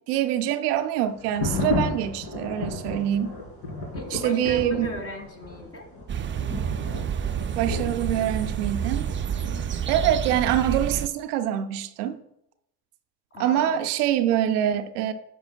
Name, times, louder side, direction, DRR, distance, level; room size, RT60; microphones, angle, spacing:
voice 1, 0.1-3.4 4.1-4.9 7.6-9.1 9.9-12.2 13.4-15.1, right 11 dB, 80° right, 0.6 m, -25 dB
sound 1, 1.2-10.6, left 2 dB, 60° left, 2.0 m, -34 dB
voice 2, 3.9-5.9 13.3-13.8, left 1 dB, 30° left, 1.6 m, -37 dB
sound 2, 6.1-11.1, right 8 dB, 25° right, 0.4 m, -29 dB
9.8 x 5.1 x 2.3 m
hypercardioid pair, 50°, 45 cm